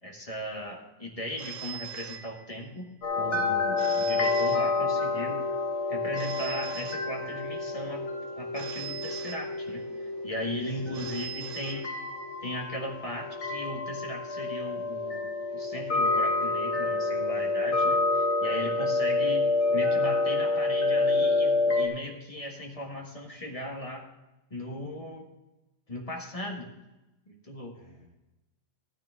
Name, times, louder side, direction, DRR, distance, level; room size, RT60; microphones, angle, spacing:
voice 1, 0.0-5.5 5.9-11.9 12.4-24.0 24.5-25.3 25.9-26.7 27.3-27.8, left 1 dB, 25° left, 0 dB, 1.7 m, -37 dB
Telephone, 1.4-2.9 3.8-5.3 6.2-7.7 8.5-10.0 10.9-12.4, right 10 dB, 70° right, 1.3 m, -42 dB
sound 1, 3.0-21.9, left 3 dB, 55° left, 1.8 m, -28 dB
voice 2, 10.5-11.0 11.5-11.7 27.7-28.1, left 2 dB, 75° left, -4 dB, 4.7 m, -55 dB
13.5 x 9.7 x 3.6 m, 1.0 s
omnidirectional pair, 1.4 m